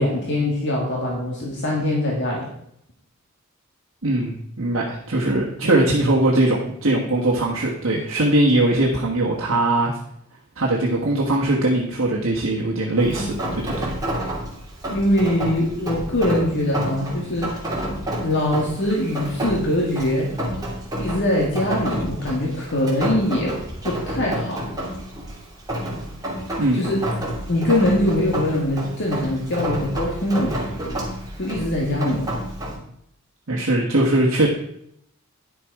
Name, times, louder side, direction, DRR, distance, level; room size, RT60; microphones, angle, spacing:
voice 1, 0.0-2.5 14.9-17.5 18.2-20.3 21.0-23.6 23.8-24.7 26.7-27.0 27.5-30.6 31.4-32.3, left 1 dB, 55° left, -2 dB, 1.9 m, -22 dB
voice 2, 4.0-9.9 10.6-13.9 26.6-26.8 33.5-34.5, right 1 dB, 65° right, -3 dB, 1.4 m, -20 dB
Rain, 13.0-32.8, equal, 20° right, 2.6 m, -29 dB
10.0 x 6.8 x 4.7 m, 0.72 s
head